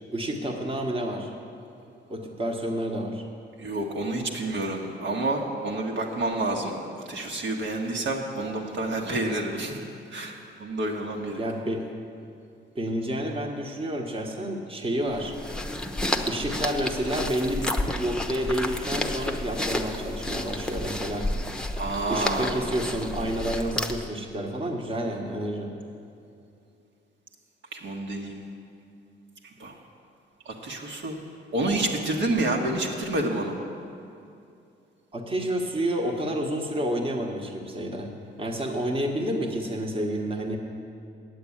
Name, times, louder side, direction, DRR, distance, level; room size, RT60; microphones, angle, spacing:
voice 1, 0.1-1.3 2.1-3.2 11.3-11.9 12.7-15.3 16.3-21.3 22.1-25.7 35.1-40.6, right 1 dB, 30° right, 1 dB, 1.3 m, -29 dB
voice 2, 3.6-6.7 7.1-9.8 10.1-11.4 21.8-22.5 27.7-28.4 29.6-29.8 30.5-31.2 31.5-33.6, right 2 dB, 70° right, 0 dB, 1.6 m, -29 dB
sound 1, 15.1-24.2, left 1 dB, 5° left, 0.8 m, -31 dB
9.3 x 7.9 x 8.6 m, 2.6 s
cardioid pair, 90°, 20 cm